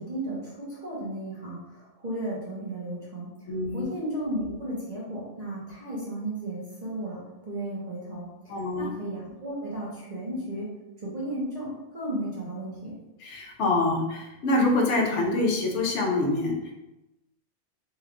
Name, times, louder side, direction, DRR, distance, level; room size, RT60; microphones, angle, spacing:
voice 1, 0.0-3.3 3.7-10.7 11.0-13.0, right 1 dB, 40° right, -7 dB, 0.8 m, -34 dB
voice 2, 3.5-3.8 8.5-8.9 13.2-16.7, left 2 dB, 75° left, 1 dB, 1.0 m, -25 dB
3.2 x 2.3 x 3.6 m, 1.0 s
omnidirectional pair, 1.3 m